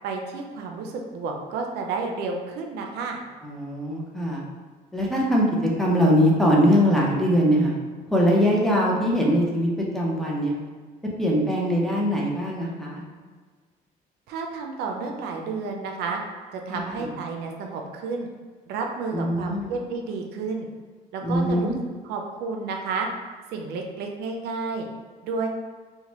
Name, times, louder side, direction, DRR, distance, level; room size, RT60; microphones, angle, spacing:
voice 1, 0.0-3.2 14.3-16.2 16.5-18.3 18.7-20.7 21.1-21.7 22.0-23.1 23.5-24.9 25.2-25.5, right 4 dB, 75° right, 2 dB, 0.4 m, -31 dB
voice 2, 3.4-4.4 4.9-5.5 5.8-7.7 8.1-9.7 9.9-10.5 11.2-13.0 16.7-17.1 19.1-19.7 21.2-21.7, equal, ahead, -4 dB, 0.5 m, -22 dB
2.8 x 2.1 x 2.9 m, 1.5 s
cardioid pair, 110°, 17 cm